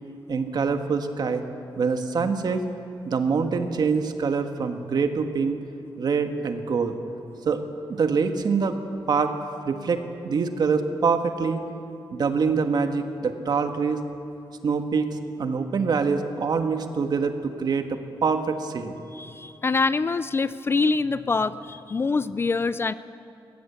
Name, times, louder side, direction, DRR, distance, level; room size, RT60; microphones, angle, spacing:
voice 1, 0.3-1.4 1.8-2.6 3.0-5.6 6.0-7.0 7.4-7.6 7.9-8.7 9.1-9.4 9.7-11.6 12.1-14.0 14.6-15.1 15.4-19.0, right 5 dB, 50° right, 7 dB, 1.4 m, -25 dB
voice 2, 19.1-22.9, left 4 dB, 25° left, 15 dB, 0.4 m, -25 dB
22.0 x 17.0 x 8.2 m, 2.7 s
wide cardioid pair, 165°, 9 cm